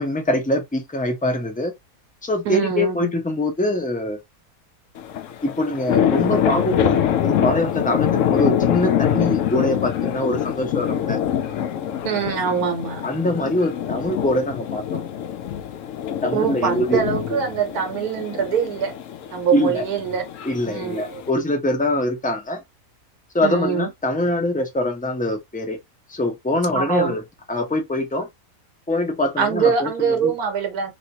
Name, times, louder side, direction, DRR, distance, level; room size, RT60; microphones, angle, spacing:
voice 1, 0.0-1.7 2.2-4.2 5.4-11.2 13.0-15.0 16.2-17.4 19.5-19.8 20.4-22.6 23.3-25.8 26.1-27.2 27.5-28.3 28.9-30.3, left 1 dB, 10° left, 0.6 m, -23 dB
voice 2, 2.4-3.1 12.0-13.0 16.3-18.9 19.3-20.3 20.6-21.2 23.4-23.9 26.7-27.2 29.4-30.9, right 7 dB, 85° right, 1.5 m, -23 dB
sound 1, 5.0-21.3, left 10 dB, 65° left, 0.9 m, -24 dB
3.0 x 2.9 x 2.8 m
omnidirectional pair, 1.5 m